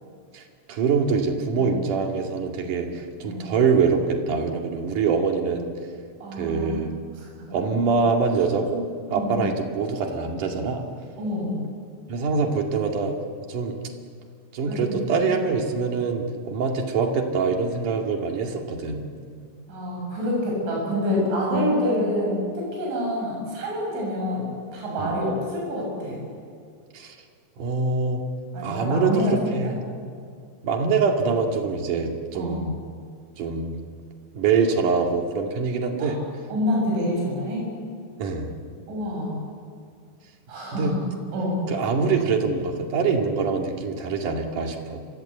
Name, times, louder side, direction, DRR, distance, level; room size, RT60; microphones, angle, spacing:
voice 1, 0.7-5.7 6.3-6.9 7.5-10.9 12.1-13.1 13.5-13.8 14.5-19.0 25.0-25.1 26.9-27.2 27.6-28.2 28.6-29.8 30.6-32.8 33.4-33.8 34.3-36.2 38.2-38.5 40.7-41.0 41.7-45.0, right 5 dB, 50° right, 2 dB, 3.4 m, -24 dB
voice 2, 6.2-6.7 7.4-7.5 9.1-9.4 11.2-11.6 14.7-14.9 19.7-26.2 28.5-29.7 32.4-32.7 36.0-36.1 36.5-37.7 38.9-39.4 40.5-41.0 41.3-41.6, left 1 dB, 80° right, -2 dB, 9.3 m, -27 dB
29.5 x 24.0 x 8.1 m, 2.2 s
omnidirectional pair, 5.4 m